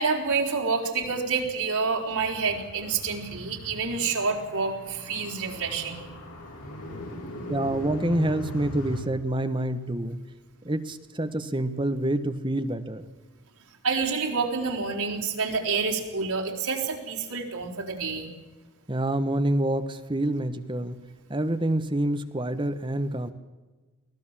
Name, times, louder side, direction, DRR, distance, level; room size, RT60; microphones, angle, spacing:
voice 1, 0.0-6.1 13.8-18.3, right 4 dB, 85° right, 1 dB, 4.4 m, -28 dB
Car, 2.1-9.0, equal, 90° left, 6.2 m, -39 dB
voice 2, 7.5-10.2 10.6-13.0 18.9-21.0 21.3-23.3, right 1 dB, 20° right, 10 dB, 1.2 m, -27 dB
24.0 x 17.0 x 7.5 m, 1.2 s
head